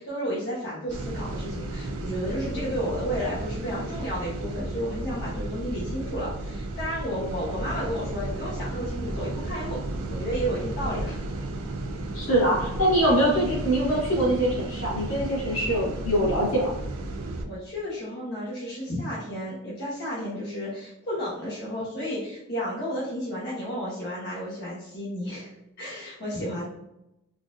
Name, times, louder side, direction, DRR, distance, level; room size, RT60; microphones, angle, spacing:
voice 1, 0.0-9.8 10.1-11.2 17.4-25.5 25.8-26.7, equal, 50° left, -9 dB, 0.8 m, -32 dB
sound 1, 0.9-17.5, right 2 dB, 70° right, 0.4 m, -33 dB
voice 2, 12.1-16.7, right 1 dB, 75° left, -5 dB, 1.3 m, -23 dB
3.8 x 2.5 x 2.4 m, 0.87 s
head